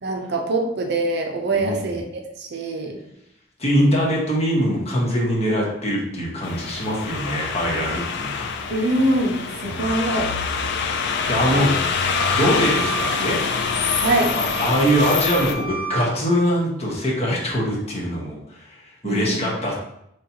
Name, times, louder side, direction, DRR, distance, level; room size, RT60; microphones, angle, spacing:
voice 1, 0.0-3.0 8.7-10.3 11.5-11.8 14.0-14.4 19.0-19.4, right 2 dB, 60° right, 2 dB, 0.6 m, -23 dB
voice 2, 3.6-8.5 9.7-10.0 11.0-11.7 12.3-13.4 14.3-19.7, equal, 35° left, -3 dB, 1.0 m, -23 dB
sound 1, 6.4-15.5, left 5 dB, 60° left, 0.4 m, -25 dB
Wind instrument woodwind instrument, 12.1-16.1, right 4 dB, 5° right, 0.5 m, -31 dB
4.1 x 3.1 x 2.8 m, 0.79 s
head